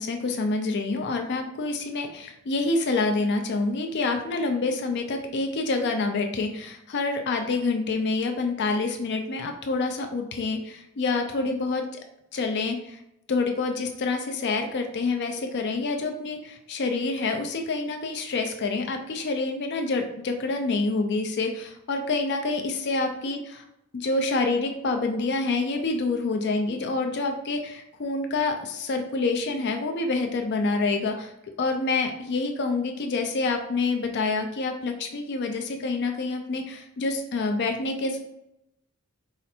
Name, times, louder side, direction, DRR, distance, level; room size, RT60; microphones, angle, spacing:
voice 1, 0.0-12.0 12.3-13.0 13.3-23.6 23.9-31.3 31.6-38.2, left 3 dB, 50° left, 4 dB, 0.4 m, -27 dB
4.1 x 2.5 x 4.2 m, 0.84 s
head